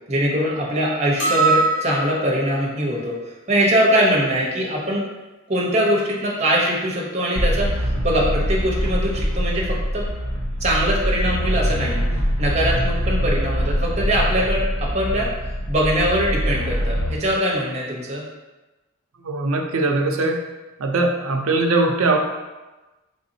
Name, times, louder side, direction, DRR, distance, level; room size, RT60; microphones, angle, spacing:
voice 1, 0.1-3.2 3.5-5.0 5.5-7.7 8.0-10.0 10.6-12.0 12.4-15.3 15.7-18.2, equal, 30° right, -4 dB, 0.8 m, -22 dB
sound 1, 1.2-2.5, right 3 dB, 35° left, 1.0 m, -21 dB
sound 2, 7.4-17.2, equal, 90° left, 0.8 m, -23 dB
voice 2, 19.2-20.4 20.8-22.2, right 2 dB, 75° right, 3 dB, 0.5 m, -20 dB
4.1 x 3.4 x 2.7 m, 1.1 s
head